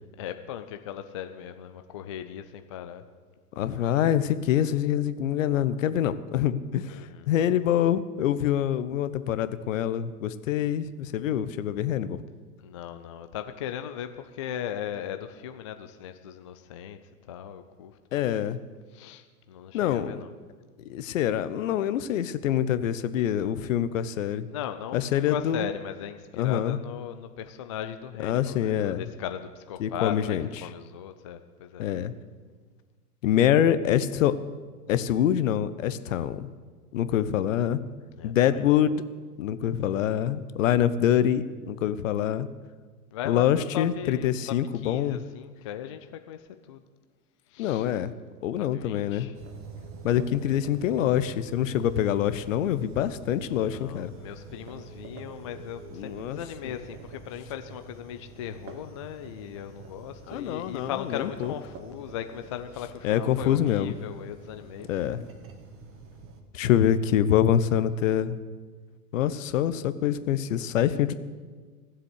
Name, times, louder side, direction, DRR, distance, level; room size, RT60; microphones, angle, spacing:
voice 1, 0.2-3.0 6.9-7.3 12.6-17.0 17.3-18.3 18.9-20.3 24.5-31.9 38.2-38.7 43.1-46.8 47.5-47.9 48.6-49.4 53.7-64.9, left 10 dB, 25° left, 8 dB, 0.3 m, -38 dB
voice 2, 3.6-7.0 7.3-12.2 18.1-18.6 19.7-20.2 20.8-24.5 24.9-25.7 26.4-26.8 28.2-29.1 29.8-30.5 31.8-32.1 33.2-34.3 34.9-36.5 36.9-37.8 38.2-39.0 39.4-42.5 43.2-45.2 47.6-48.1 48.4-49.3 50.0-54.1 55.9-56.7 60.3-61.5 63.0-63.9 64.9-65.3 66.5-68.4 69.1-71.1, left 10 dB, 55° left, 14 dB, 1.0 m, -25 dB
sound 1, 49.3-66.4, right 4 dB, 30° right, 1.6 m, -46 dB
16.0 x 7.6 x 8.2 m, 1.5 s
hypercardioid pair, 110°, 46 cm